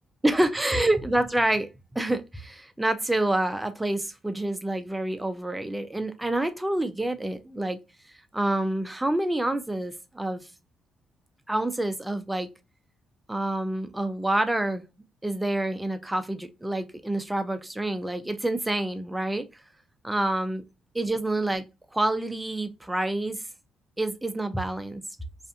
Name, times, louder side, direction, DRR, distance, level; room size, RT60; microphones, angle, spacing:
voice 1, 0.2-1.7 1.9-7.8 8.3-10.5 11.5-12.5 13.3-14.8 15.2-19.5 20.0-20.6 20.9-21.6 21.9-23.4 24.0-25.0, right 1 dB, 10° right, 0.4 m, -27 dB
2.4 x 2.4 x 2.5 m
cardioid pair, 90°, 0 cm